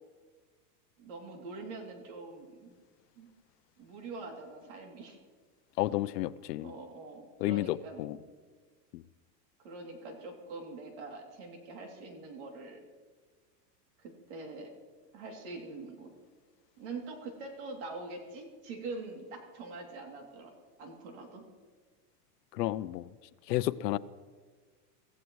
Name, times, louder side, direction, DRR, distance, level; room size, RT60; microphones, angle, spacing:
voice 1, 1.0-2.8 3.2-3.3 3.8-5.2 6.6-8.3 9.6-12.8 14.0-14.7 15.1-16.1 16.8-20.5 20.8-21.4, right 3 dB, 45° right, 1 dB, 3.0 m, -44 dB
voice 2, 5.8-6.7 7.4-8.2 8.9-9.0 22.5-23.0 23.5-24.0, left 15 dB, 80° left, 16 dB, 0.7 m, -31 dB
26.0 x 15.5 x 3.2 m, 1.5 s
supercardioid pair, 175°, 48 cm